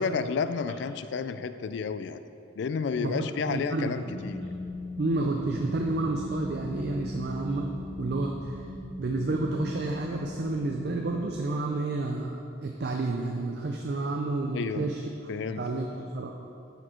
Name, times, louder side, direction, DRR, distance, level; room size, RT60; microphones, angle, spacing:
voice 1, 0.0-2.2 2.6-4.4 14.5-14.9 15.3-15.6 15.9-16.0, left 5 dB, 60° left, 12 dB, 0.3 m, -31 dB
voice 2, 3.0-3.9 5.0-7.7 8.0-8.6 9.0-15.0 15.6-15.9 16.1-16.3, right 2 dB, 50° right, 1 dB, 0.4 m, -30 dB
sound 1, 4.1-11.3, left 2 dB, 40° left, 1.1 m, -39 dB
9.2 x 4.3 x 4.4 m, 2.7 s
head